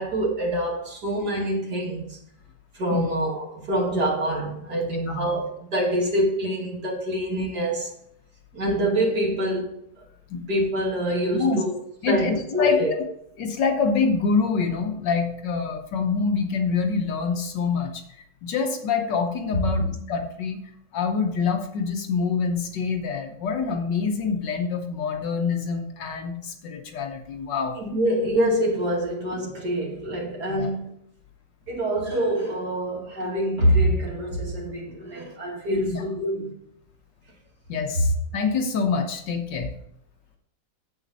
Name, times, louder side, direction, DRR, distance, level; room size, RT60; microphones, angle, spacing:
voice 1, 0.0-2.2 2.7-7.9 8.5-9.7 10.5-11.7 12.1-12.9 27.8-30.9 31.7-36.5, right 1 dB, 55° right, 2.8 m, -25 dB
voice 2, 12.0-13.0 13.4-18.0 18.4-20.6 20.9-27.8 30.5-30.7 35.9-36.0 37.7-39.7, left 5 dB, 65° left, 1.6 m, -26 dB
9.2 x 7.9 x 4.1 m
omnidirectional pair, 2.1 m